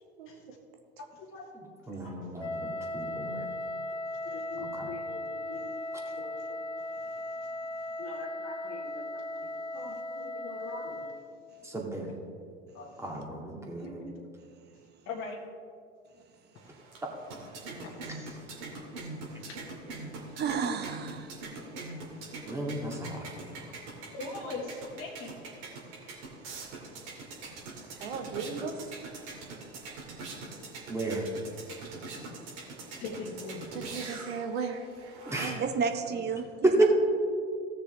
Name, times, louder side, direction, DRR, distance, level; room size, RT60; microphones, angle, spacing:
voice 1, 1.0-1.5 1.9-2.3 4.2-5.7 6.0-6.6 8.0-11.1 12.7-12.9 13.8-14.2 15.0-15.4 17.9-18.0 19.4-19.7 24.1-25.5 33.0-33.7, left 3 dB, 40° left, -1 dB, 1.5 m, -42 dB
voice 2, 1.9-3.5 4.6-4.9 11.6-12.1 13.0-14.0 22.5-23.5 30.9-31.2 35.3-35.5 36.6-36.8, right 2 dB, 10° right, -1 dB, 2.2 m, -31 dB
Wind instrument woodwind instrument, 2.4-11.3, left 1 dB, 15° left, 1.1 m, -37 dB
sound 1, 16.6-35.7, right 3 dB, 50° right, 2.3 m, -43 dB
voice 3, 20.4-21.3 35.6-36.8, right 5 dB, 30° right, 7 dB, 0.9 m, -31 dB
voice 4, 28.0-28.9 33.7-35.6 36.1-36.2, right 5 dB, 75° right, 5 dB, 1.3 m, -37 dB
16.0 x 6.7 x 3.3 m, 2.3 s
hypercardioid pair, 80°, 32 cm